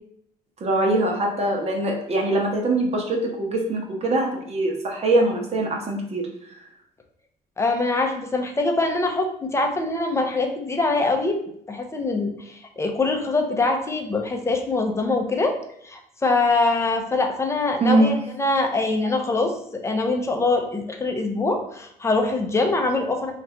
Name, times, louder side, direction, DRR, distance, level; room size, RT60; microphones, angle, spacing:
voice 1, 0.6-6.5 17.8-18.1, right 2 dB, 40° right, 0 dB, 0.8 m, -23 dB
voice 2, 7.6-15.6 15.8-19.5 19.8-23.3, left 3 dB, 15° left, 4 dB, 0.6 m, -23 dB
3.2 x 2.5 x 4.3 m, 0.67 s
cardioid pair, 110°, 17 cm